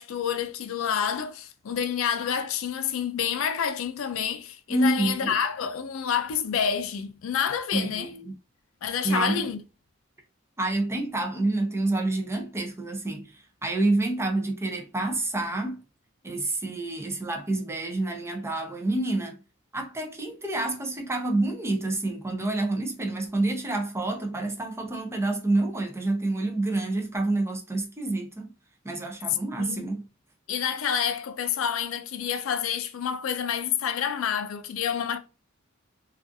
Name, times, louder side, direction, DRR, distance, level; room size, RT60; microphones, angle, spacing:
voice 1, 0.0-8.1 8.8-9.6 29.6-29.9 30.5-35.2, left 8 dB, 70° left, 0.4 m, -28 dB
voice 2, 4.7-5.4 7.7-8.3 9.0-9.5 10.6-15.8 16.2-19.4 19.7-28.5 28.8-30.0, right 2 dB, 10° right, 0.5 m, -28 dB
2.4 x 2.3 x 2.5 m
head